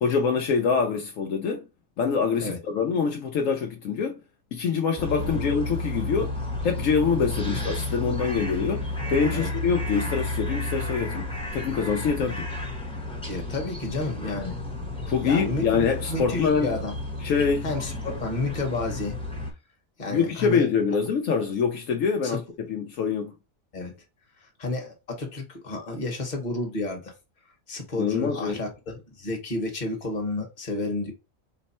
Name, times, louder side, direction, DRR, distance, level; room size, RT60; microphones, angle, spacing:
voice 1, 0.0-1.6 2.0-4.2 4.5-6.3 6.6-12.4 15.1-16.7 17.2-17.7 20.1-22.4 22.7-23.3 28.0-28.6, left 6 dB, 75° left, 1.0 m, -25 dB
sound 1, 5.0-19.5, left 2 dB, 5° left, 0.7 m, -32 dB
voice 2, 13.3-14.5 15.2-16.9 17.6-19.2 20.0-20.6 22.2-22.4 23.7-24.0 24.6-27.1 27.7-31.1, left 2 dB, 35° left, 1.2 m, -31 dB
4.4 x 2.1 x 4.1 m
omnidirectional pair, 1.4 m